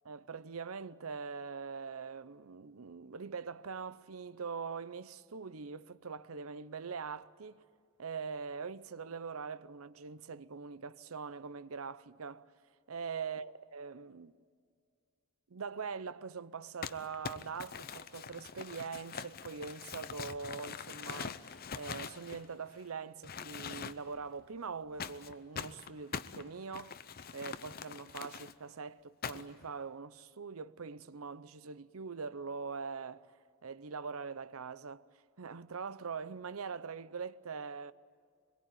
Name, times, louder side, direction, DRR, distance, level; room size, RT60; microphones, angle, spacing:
voice 1, 0.0-7.6 8.0-12.5 12.9-14.3 15.5-27.0 27.3-33.3 33.6-35.0 35.4-37.9, right 5 dB, 90° right, 0.7 m, -43 dB
Crumpling crinkling, 16.8-22.8 23.2-24.2 25.0-28.5 29.2-29.6, left 6 dB, 45° left, 0.7 m, -43 dB
24.0 x 22.0 x 9.1 m
head